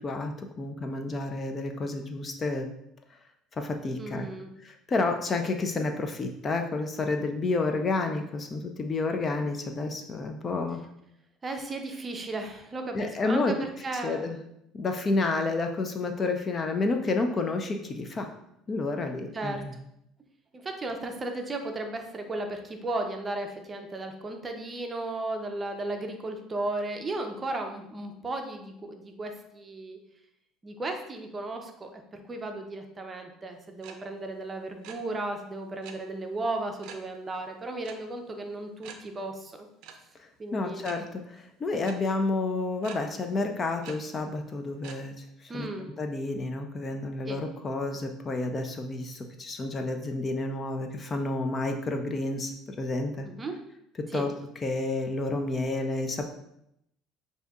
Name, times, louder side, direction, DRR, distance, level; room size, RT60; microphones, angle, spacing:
voice 1, 0.0-2.7 3.5-4.3 4.6-10.8 12.9-13.5 14.0-14.4 14.7-18.3 18.7-19.7 40.2-45.7 46.0-53.3 54.0-54.3 54.6-56.3, left 3 dB, 30° left, 5 dB, 0.4 m, -30 dB
voice 2, 4.0-4.5 11.4-14.3 19.3-19.6 20.5-30.0 30.6-39.7 40.4-40.9 45.5-45.9 47.2-47.4 53.2-53.6 54.1-54.3, right 2 dB, 25° right, 4 dB, 0.5 m, -35 dB
sound 1, 33.8-33.9 34.2-34.4 34.7-35.0 35.8-35.9 36.8-37.0 37.8-37.9 38.3-38.4 38.8-39.0 39.8-39.9 40.8-40.9 41.8-41.9 42.8-43.0 43.8-43.9 44.8-45.0, right 8 dB, 75° right, 0.5 m, -44 dB
6.4 x 2.7 x 2.3 m, 0.79 s
supercardioid pair, 110°, 0 cm